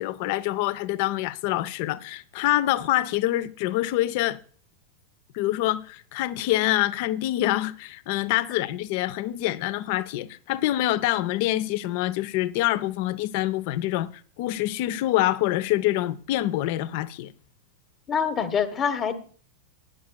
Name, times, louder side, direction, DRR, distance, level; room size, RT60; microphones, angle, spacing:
voice 1, 0.0-4.4 5.3-14.1 14.4-17.3, left 15 dB, 50° left, 0.5 m, -26 dB
voice 2, 18.1-19.2, left 7 dB, 25° left, 0.9 m, -25 dB
18.0 x 10.0 x 2.2 m
figure-of-eight pair, 90°, 0 cm